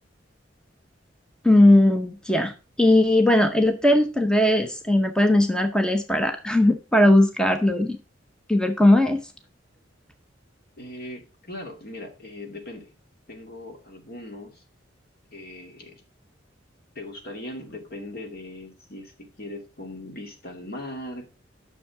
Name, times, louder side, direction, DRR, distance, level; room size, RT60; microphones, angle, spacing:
voice 1, 1.4-2.5 2.8-8.0 8.5-9.2, left 1 dB, 5° left, 6 dB, 0.7 m, -18 dB
voice 2, 10.8-12.9 13.3-14.6 15.3-16.0 16.9-21.3, left 1 dB, 55° left, 3 dB, 2.5 m, -39 dB
10.0 x 6.4 x 4.7 m, 0.32 s
head